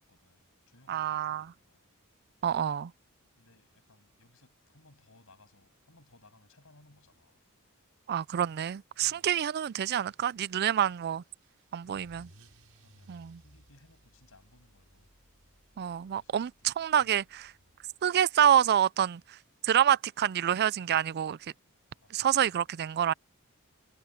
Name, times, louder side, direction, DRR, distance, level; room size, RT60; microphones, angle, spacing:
voice 1, 0.0-1.8 3.4-7.4 9.0-9.4 11.8-12.3 12.7-15.1 15.8-16.7 17.0-17.2 22.0-22.3, left 2 dB, 70° left, 7.6 m, -62 dB
voice 2, 0.9-1.5 2.4-2.9 8.1-11.2 11.7-12.3 13.1-13.4 15.8-17.5 18.0-19.4 19.6-21.4 22.1-23.1, right 10 dB, 50° right, 0.3 m, -27 dB
Car / Engine starting / Accelerating revving vroom, 11.0-18.2, right 1 dB, 70° right, 7.1 m, -61 dB
head